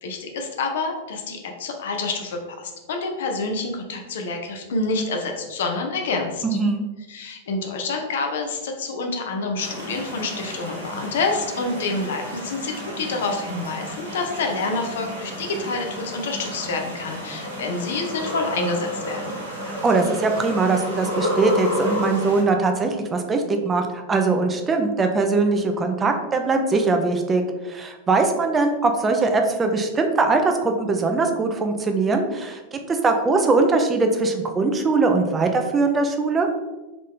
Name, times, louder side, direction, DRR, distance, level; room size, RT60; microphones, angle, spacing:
voice 1, 0.0-6.6 7.1-19.4, left 3 dB, 60° left, 3 dB, 0.7 m, -28 dB
voice 2, 6.4-6.8 19.7-27.4 27.7-36.5, right 3 dB, 20° right, 5 dB, 0.5 m, -21 dB
sound 1, 9.6-22.4, right 1 dB, 80° right, 1.2 m, -35 dB
sound 2, 17.4-22.5, left 1 dB, 85° left, 1.1 m, -29 dB
3.9 x 3.1 x 3.6 m, 1.2 s
figure-of-eight pair, 90°, 0 cm